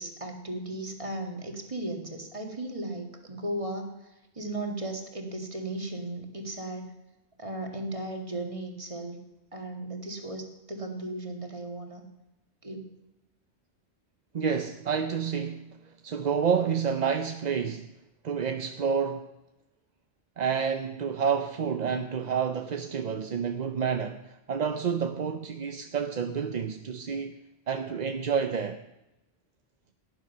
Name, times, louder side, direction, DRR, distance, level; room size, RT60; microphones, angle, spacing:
voice 1, 0.0-6.9 7.4-9.2 9.5-12.0 12.6-12.9, right 1 dB, 30° right, 2.1 m, -36 dB
voice 2, 14.3-17.9 18.2-19.3 20.4-27.4 27.7-28.8, right 6 dB, 50° right, 0.7 m, -29 dB
17.5 x 10.0 x 5.6 m
omnidirectional pair, 1.1 m